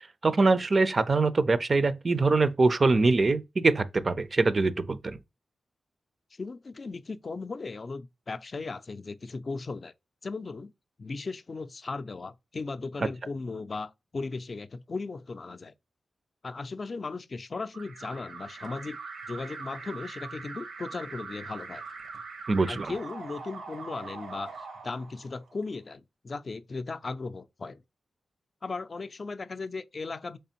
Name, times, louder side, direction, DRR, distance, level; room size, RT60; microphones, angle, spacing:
voice 1, 0.2-5.2 22.5-22.9, right 3 dB, 45° right, 0.4 m, -23 dB
voice 2, 6.3-9.9 10.2-10.7 11.0-15.7 16.4-19.0 19.3-21.8 22.7-24.5 24.8-27.8 28.6-30.4, left 3 dB, 50° left, 0.4 m, -37 dB
Alarm, 17.7-25.6, right 4 dB, 80° right, 0.7 m, -42 dB
3.4 x 3.3 x 2.7 m
cardioid pair, 60°, 0 cm